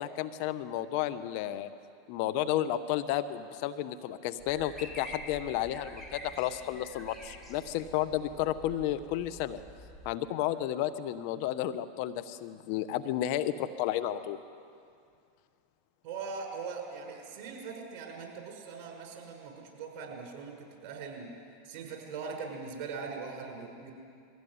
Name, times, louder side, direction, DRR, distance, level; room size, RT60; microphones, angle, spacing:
voice 1, 0.0-1.7 2.1-9.6 10.0-14.4, left 12 dB, 60° left, 11 dB, 1.1 m, -32 dB
sound 1, 4.4-10.1, equal, 5° left, 3.1 m, -47 dB
voice 2, 16.0-21.3 21.6-23.9, right 5 dB, 55° right, 2 dB, 6.0 m, -41 dB
22.0 x 16.0 x 9.7 m, 2.4 s
hypercardioid pair, 105°, 0 cm